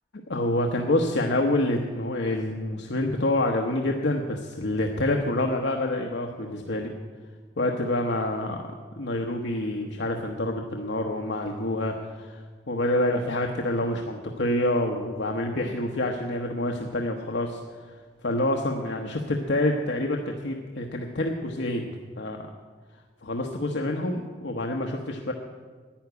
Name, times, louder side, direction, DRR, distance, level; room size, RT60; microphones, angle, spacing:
voice 1, 0.3-6.9 7.6-8.6 9.0-17.6 18.2-22.4 23.2-25.3, left 1 dB, 85° left, 2 dB, 1.0 m, -27 dB
12.0 x 9.5 x 9.5 m, 1.5 s
head